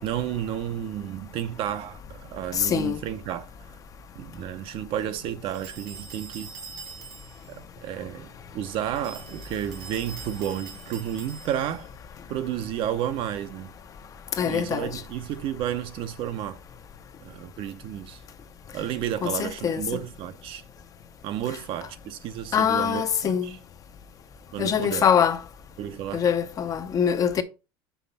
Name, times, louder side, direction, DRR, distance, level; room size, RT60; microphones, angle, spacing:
voice 1, 0.0-3.5 4.1-6.5 7.5-11.9 12.3-13.7 14.4-16.6 17.2-18.2 18.7-20.6 21.2-23.6 24.5-25.1 25.8-26.3, right 10 dB, 50° right, 0.7 m, -32 dB
voice 2, 2.5-3.0 14.4-15.0 19.2-19.8 22.5-23.5 24.6-25.4 26.1-27.4, left 8 dB, 30° left, 0.6 m, -23 dB
sound 1, 5.5-7.5 9.0-11.8, right 6 dB, 80° right, 3.0 m, -43 dB
5.7 x 5.0 x 4.1 m
cardioid pair, 140°, 12 cm